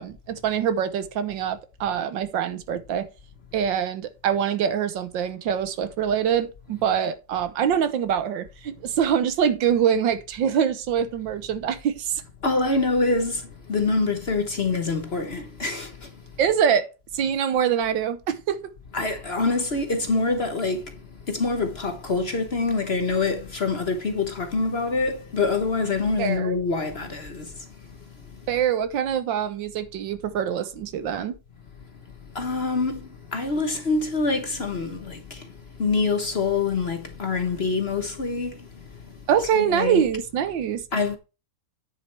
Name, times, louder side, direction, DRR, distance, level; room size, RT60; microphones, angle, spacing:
voice 1, 0.0-3.1 3.5-12.2 16.4-16.8 17.1-18.6 26.2-26.5 28.5-31.4 39.3-40.8, right 8 dB, 80° right, 1.7 m, -24 dB
voice 2, 12.4-16.1 18.9-21.0 21.3-27.9 28.3-28.4 32.3-39.2 39.5-40.0 40.9-41.2, left 3 dB, 40° left, 1.1 m, -26 dB
9.5 x 7.5 x 3.3 m
omnidirectional pair, 2.0 m